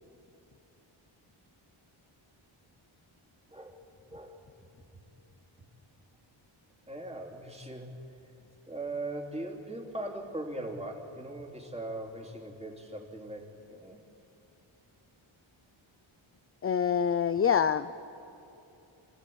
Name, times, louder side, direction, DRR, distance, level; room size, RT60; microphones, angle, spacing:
voice 1, 3.5-4.4 6.9-7.9 8.7-14.0, right 1 dB, 10° right, 0 dB, 3.0 m, -40 dB
voice 2, 16.6-17.9, left 7 dB, 30° left, 13 dB, 0.4 m, -26 dB
26.5 x 14.0 x 8.6 m, 2.8 s
wide cardioid pair, 80°, 50 cm